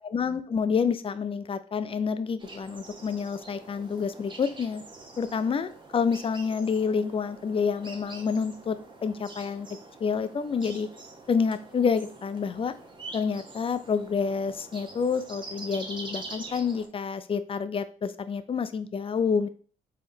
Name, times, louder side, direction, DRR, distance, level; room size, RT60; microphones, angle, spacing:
voice 1, 0.0-4.8 5.2-9.7 10.0-10.9 11.3-12.7 13.1-19.5, left 6 dB, 30° left, 12 dB, 0.5 m, -28 dB
sound 1, 2.4-16.9, right 2 dB, 25° right, 1.2 m, -45 dB
4.4 x 3.5 x 2.8 m, 0.42 s
hypercardioid pair, 55°, 18 cm